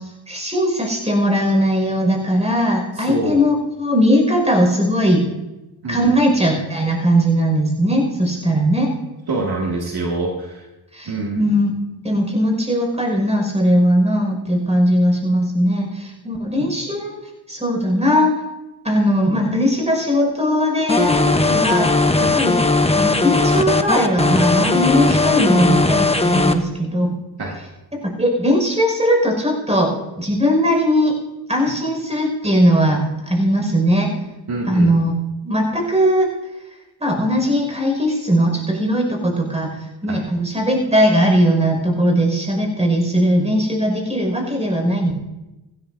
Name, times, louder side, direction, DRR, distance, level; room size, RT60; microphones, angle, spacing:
voice 1, 0.3-5.3 5.9-8.9 10.9-11.7 12.0-17.2 17.5-18.3 18.8-21.9 22.2-22.6 22.9-27.1 28.0-31.2 31.5-34.1 34.7-35.1 35.4-36.3 37.0-39.7 40.0-45.1, equal, 15° right, 1 dB, 5.8 m, -19 dB
voice 2, 3.0-3.4 5.8-6.1 9.3-10.6 11.1-11.4 16.6-16.7 22.2-22.4 27.4-27.6 31.6-31.7 34.5-34.9 40.1-40.2, right 2 dB, 55° right, -2 dB, 2.4 m, -25 dB
sound 1, 20.9-26.5, left 3 dB, 15° left, 1.1 m, -17 dB
17.5 x 16.0 x 2.8 m, 1.0 s
cardioid pair, 65°, 46 cm